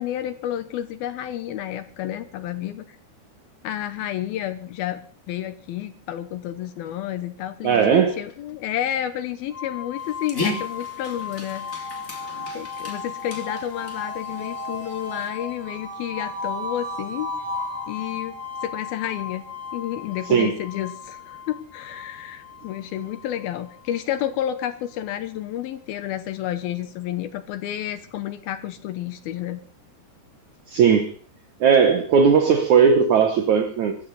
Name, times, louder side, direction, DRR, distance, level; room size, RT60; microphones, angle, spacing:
voice 1, 0.0-3.0 3.6-5.0 5.3-11.9 12.5-17.3 17.9-19.4 19.7-29.6, left 11 dB, 75° left, 2.5 m, -30 dB
voice 2, 7.6-8.2 20.3-20.6 30.7-31.1 31.6-34.0, right 6 dB, 70° right, 1.8 m, -17 dB
sound 1, 9.5-24.4, left 4 dB, 5° right, 3.0 m, -35 dB
Dog, 10.0-15.3, left 2 dB, 20° left, 2.9 m, -35 dB
23.5 x 13.0 x 4.1 m
omnidirectional pair, 4.9 m